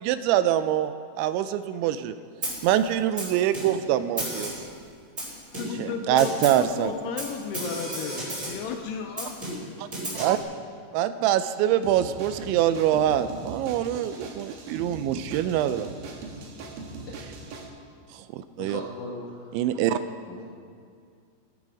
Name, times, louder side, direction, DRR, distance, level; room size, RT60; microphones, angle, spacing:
voice 1, 0.0-2.2 2.6-4.5 5.8-6.9 9.8-9.9 10.1-10.4 10.9-15.9 18.3-18.8 19.5-20.0, right 11 dB, 85° right, 12 dB, 2.8 m, -24 dB
Snare drum, 2.4-2.7 3.2-3.9 4.2-4.7 5.2-5.9 6.2-6.7 7.2-8.7 9.2-10.4, right 1 dB, 20° right, 3.5 m, -34 dB
voice 2, 5.5-9.7, left 6 dB, 90° left, 5 dB, 2.4 m, -34 dB
sound 1, 11.8-17.7, right 3 dB, 65° right, 2.7 m, -40 dB
voice 3, 18.6-19.6 20.3-20.4, left 2 dB, 70° left, -4 dB, 1.9 m, -38 dB
14.5 x 13.5 x 4.9 m, 2.2 s
omnidirectional pair, 5.4 m